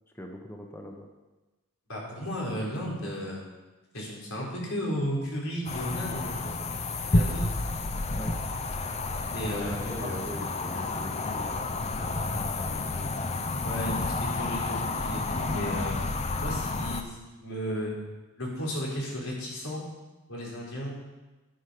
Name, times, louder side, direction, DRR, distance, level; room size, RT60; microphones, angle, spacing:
voice 1, 0.1-1.1 8.1-8.4 9.5-13.1 13.8-14.1 16.2-16.4, equal, 10° left, 1 dB, 1.0 m, -42 dB
voice 2, 1.9-3.4 3.9-6.4 7.1-7.4 9.3-10.2 13.6-13.9 14.2-16.0 16.4-18.0 18.4-19.8 20.3-21.0, equal, 85° left, -4 dB, 4.1 m, -34 dB
sound 1, 5.7-17.0, left 2 dB, 30° left, 0.7 m, -30 dB
11.0 x 10.5 x 5.1 m, 1.2 s
head